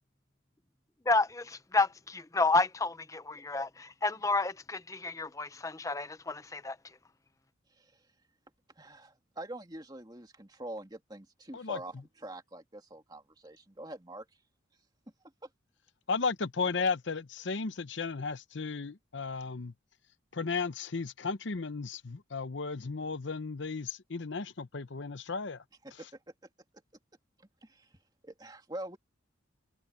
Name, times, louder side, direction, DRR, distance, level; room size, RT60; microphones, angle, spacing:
voice 1, 1.1-3.7 4.0-6.8, left 3 dB, 15° left, 0.6 m, -30 dB
voice 2, 8.8-14.2 25.8-26.1 27.6-27.9 28.2-29.0, right 1 dB, 20° right, 2.5 m, -44 dB
voice 3, 16.1-19.7 20.3-25.6, left 4 dB, 65° left, 0.8 m, -34 dB
head